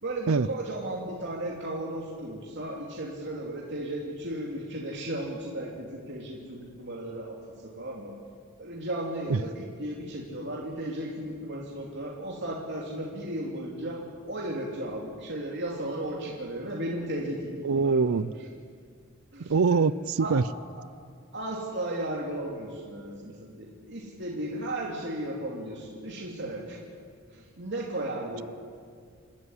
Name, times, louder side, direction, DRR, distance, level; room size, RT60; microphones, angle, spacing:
voice 1, 0.0-7.4 7.8-8.1 8.6-14.0 14.3-18.0 19.3-19.8 20.2-20.3 20.8-20.9 21.3-26.8 27.3-28.4, right 1 dB, 55° right, -3 dB, 2.9 m, -35 dB
voice 2, 17.6-18.3 19.4-20.4, right 4 dB, 70° right, 17 dB, 0.5 m, -23 dB
27.0 x 14.0 x 9.8 m, 2.1 s
head